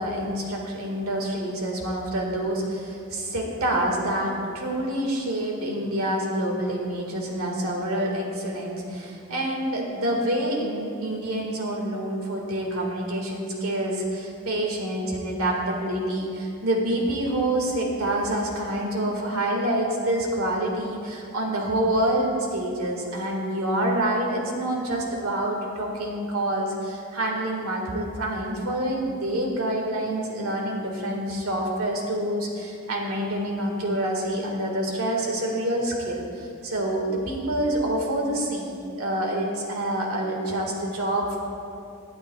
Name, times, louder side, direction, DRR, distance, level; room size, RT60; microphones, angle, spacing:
voice 1, 0.0-41.4, right 1 dB, 85° right, 0 dB, 1.9 m, -27 dB
21.5 x 8.9 x 2.4 m, 2.5 s
head